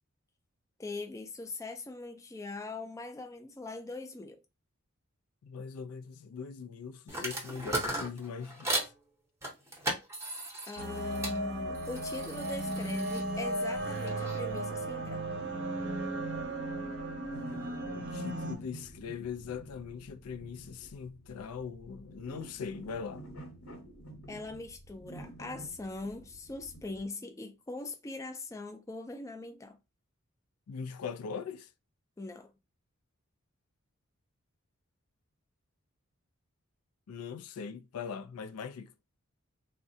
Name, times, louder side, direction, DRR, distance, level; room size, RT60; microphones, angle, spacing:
voice 1, 0.8-4.4 10.7-15.2 24.3-29.8 32.2-32.5, left 2 dB, 15° left, 0.3 m, -41 dB
voice 2, 5.4-8.9 17.9-23.3 30.7-31.7 37.1-38.9, left 6 dB, 90° left, 0.4 m, -41 dB
sound 1, 7.1-8.9 9.4-11.4 11.7-14.4, right 1 dB, 15° right, 0.7 m, -37 dB
sound 2, 10.8-18.5, right 1 dB, 55° right, 0.6 m, -35 dB
sound 3, 11.5-27.0, right 1 dB, 70° left, 1.1 m, -51 dB
3.5 x 2.1 x 2.7 m
head